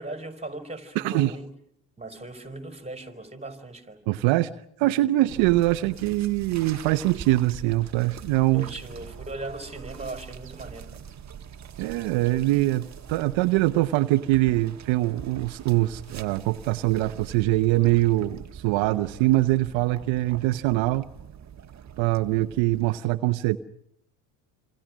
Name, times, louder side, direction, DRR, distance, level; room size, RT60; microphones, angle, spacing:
voice 1, 0.0-1.5 2.0-4.0 8.5-11.0, right 2 dB, 15° right, 4.6 m, -38 dB
voice 2, 1.0-1.3 4.1-4.5 4.8-8.7 11.8-12.8 13.1-21.1 22.0-23.6, right 17 dB, 70° right, 1.0 m, -23 dB
sound 1, 5.3-23.0, right 8 dB, 35° right, 1.5 m, -43 dB
27.5 x 27.0 x 6.2 m
supercardioid pair, 80°, 48 cm